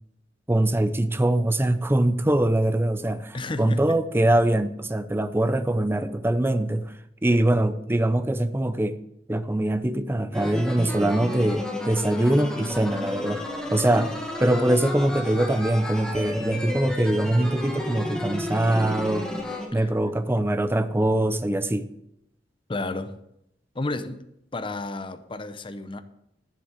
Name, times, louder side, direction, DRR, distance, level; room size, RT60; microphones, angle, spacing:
voice 1, 0.5-6.9 7.2-9.0 9.3-13.4 13.7-19.3 19.7-21.9, right 1 dB, 15° right, 0.6 m, -23 dB
voice 2, 3.3-4.0 19.8-19.9 22.7-23.2 23.7-24.2 24.5-26.0, left 2 dB, 30° left, 0.7 m, -32 dB
sound 1, 10.3-19.7, left 1 dB, 5° left, 1.7 m, -32 dB
9.8 x 7.6 x 7.4 m
head